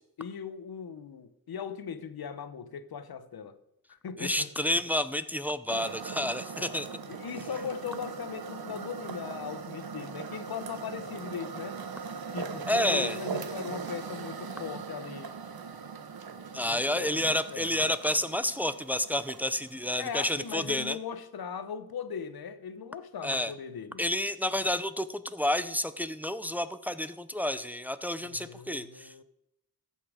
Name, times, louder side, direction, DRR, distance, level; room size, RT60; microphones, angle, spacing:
voice 1, 0.2-3.6 3.9-4.5 7.0-11.8 12.3-15.4 16.6-17.9 20.0-24.1 28.2-29.2, left 6 dB, 85° left, 0.9 m, -39 dB
voice 2, 4.2-6.9 12.7-13.2 16.5-21.0 23.2-23.5 24.0-29.1, left 1 dB, 5° right, 0.6 m, -30 dB
sound 1, 5.7-20.5, right 5 dB, 80° right, 1.0 m, -40 dB
15.0 x 5.6 x 4.9 m
cardioid pair, 55°, 36 cm